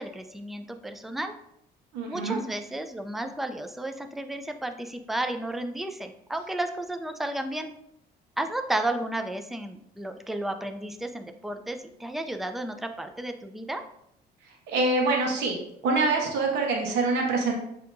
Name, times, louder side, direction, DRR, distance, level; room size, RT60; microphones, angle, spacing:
voice 1, 0.0-1.3 2.1-7.7 8.4-13.8, right 1 dB, ahead, 6 dB, 0.3 m, -33 dB
voice 2, 1.9-2.4 14.7-15.6 15.8-17.5, right 3 dB, 85° right, 1 dB, 1.1 m, -25 dB
7.4 x 2.8 x 2.6 m, 0.76 s
cardioid pair, 110°, 17 cm